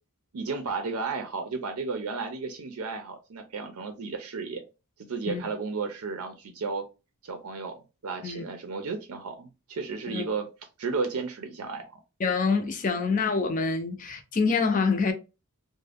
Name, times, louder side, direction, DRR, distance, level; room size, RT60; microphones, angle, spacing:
voice 1, 0.3-4.6 5.1-6.8 7.2-10.5 10.8-11.9 12.9-13.1, right 4 dB, 85° right, 0.5 m, -33 dB
voice 2, 12.2-15.1, left 4 dB, 35° left, 0.5 m, -26 dB
2.5 x 2.1 x 3.3 m
head